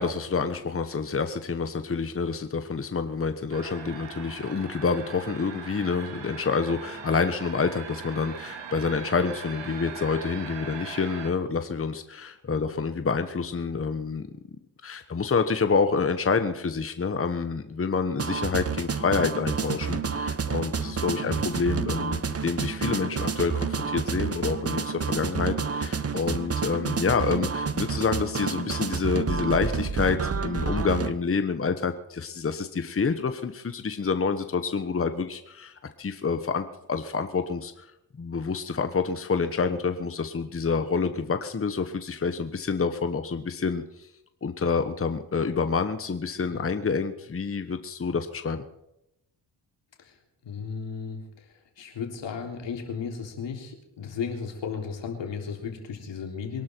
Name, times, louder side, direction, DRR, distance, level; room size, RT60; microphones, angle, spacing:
voice 1, 0.0-14.3 14.8-37.9 38.2-43.8 44.4-48.6, left 5 dB, 30° left, 9 dB, 1.2 m, -28 dB
sound 1, 3.5-11.3, right 6 dB, 80° right, 2.4 m, -40 dB
sound 2, 18.2-31.1, right 5 dB, 35° right, 1.2 m, -29 dB
voice 2, 21.2-21.6 46.5-46.7 50.0-50.2 50.4-51.5 51.8-56.6, left 6 dB, 80° left, 2 dB, 3.5 m, -35 dB
22.5 x 12.0 x 4.6 m, 0.84 s
cardioid pair, 75°, 43 cm